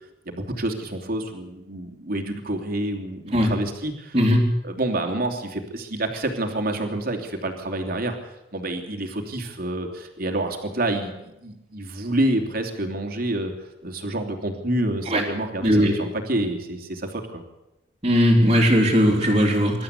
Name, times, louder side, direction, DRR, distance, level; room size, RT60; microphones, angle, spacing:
voice 1, 0.3-4.2 4.6-11.1 11.4-13.5 13.8-17.4, right 1 dB, 50° right, 3 dB, 3.1 m, -28 dB
voice 2, 4.1-4.5 15.1-15.2 15.6-15.9 18.0-19.8, equal, 30° right, -5 dB, 3.6 m, -18 dB
25.5 x 12.5 x 8.5 m, 0.92 s
head